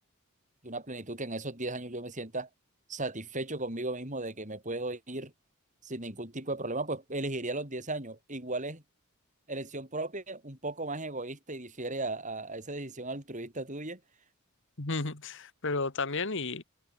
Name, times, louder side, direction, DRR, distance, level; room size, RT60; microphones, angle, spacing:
voice 1, 0.6-2.5 2.9-5.3 5.8-8.8 9.5-14.0, right 2 dB, 35° right, 6.5 m, -36 dB
voice 2, 14.8-16.6, left 3 dB, 55° left, 2.0 m, -33 dB
head